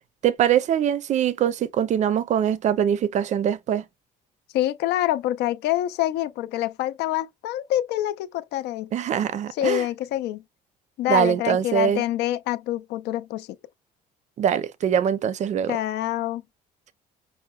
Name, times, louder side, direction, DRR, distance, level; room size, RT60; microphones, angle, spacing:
voice 1, 0.2-3.8 8.9-9.9 11.1-12.0 14.4-15.8, right 9 dB, 45° right, 0.4 m, -23 dB
voice 2, 4.5-8.9 9.6-10.4 11.0-13.5 15.7-16.4, left 13 dB, 75° left, 0.4 m, -26 dB
5.5 x 2.1 x 2.2 m
cardioid pair, 110°, 17 cm